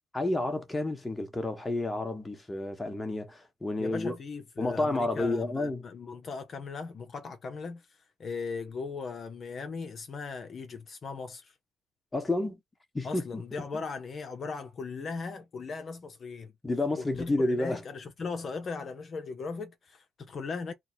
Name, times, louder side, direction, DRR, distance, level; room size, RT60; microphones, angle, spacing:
voice 1, 0.1-4.1 4.6-5.8 12.1-12.6 12.9-13.4 16.6-17.8, left 2 dB, 15° left, 1.3 m, -30 dB
voice 2, 3.8-11.5 13.0-16.5 17.0-20.7, left 4 dB, 50° left, 0.8 m, -38 dB
3.7 x 2.1 x 4.4 m
cardioid pair, 90°, 0 cm